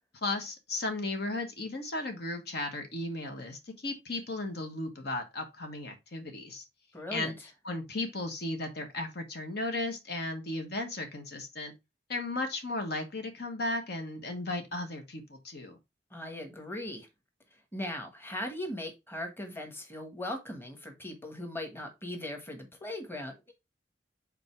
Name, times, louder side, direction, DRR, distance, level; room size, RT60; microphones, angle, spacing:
voice 1, 0.2-6.6 7.1-7.3 7.6-11.7 12.1-15.8, left 2 dB, 65° left, 1.4 m, -35 dB
voice 2, 6.9-7.4 16.1-17.1 17.7-23.5, left 1 dB, 15° left, 1.4 m, -39 dB
5.3 x 4.2 x 4.5 m
head